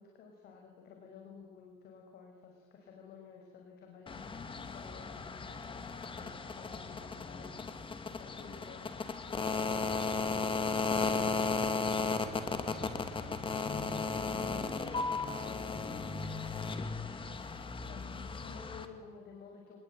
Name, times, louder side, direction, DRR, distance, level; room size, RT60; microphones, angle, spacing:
voice 1, 0.0-11.4 11.9-15.1 15.4-16.2 17.9-19.8, left 5 dB, 70° left, 1 dB, 6.0 m, -53 dB
sound 1, 4.1-18.8, left 4 dB, 30° left, 2.7 m, -35 dB
25.5 x 22.0 x 9.2 m, 1.4 s
cardioid pair, 110°, 17 cm